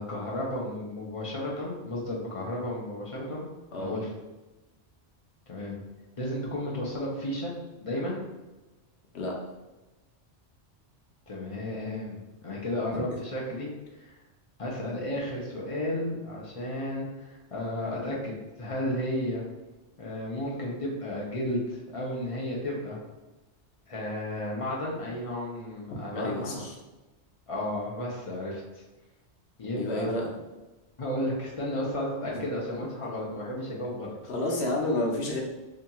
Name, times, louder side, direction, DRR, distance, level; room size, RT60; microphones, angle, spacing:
voice 1, 0.0-3.5 3.7-4.1 5.5-5.8 6.2-7.5 7.8-8.2 11.3-13.7 14.0-14.2 14.6-19.4 20.0-23.0 23.9-26.6 27.5-28.6 29.6-30.2 31.0-34.1, left 1 dB, 45° left, -4 dB, 0.4 m, -33 dB
voice 2, 26.1-26.8 29.7-30.3 32.3-32.4 34.3-35.4, left 1 dB, 70° left, -1 dB, 0.9 m, -30 dB
2.7 x 2.7 x 2.2 m, 1.1 s
omnidirectional pair, 1.2 m